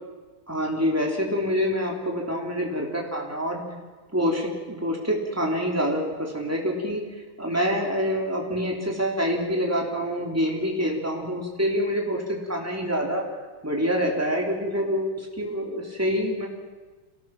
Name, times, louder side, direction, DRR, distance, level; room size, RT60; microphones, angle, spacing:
voice 1, 0.5-3.6 4.1-13.2 13.6-16.5, equal, 5° right, 0 dB, 3.3 m, -26 dB
26.5 x 18.5 x 6.1 m, 1.3 s
omnidirectional pair, 2.4 m